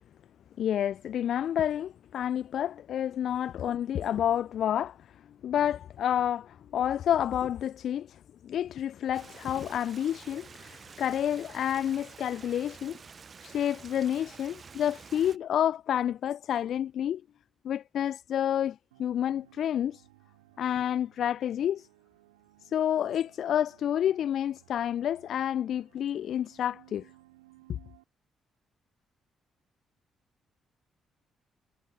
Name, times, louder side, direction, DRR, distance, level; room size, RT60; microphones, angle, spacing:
voice 1, 0.6-5.0 5.4-13.0 13.4-17.2 17.6-20.0 20.6-21.9 22.6-27.1, left 10 dB, 60° left, 0.3 m, -29 dB
Stream, 9.1-15.4, right 5 dB, 40° right, 0.7 m, -49 dB
sound 1, 18.9-28.0, right 19 dB, 80° right, 3.0 m, -60 dB
figure-of-eight pair, 40°, 0 cm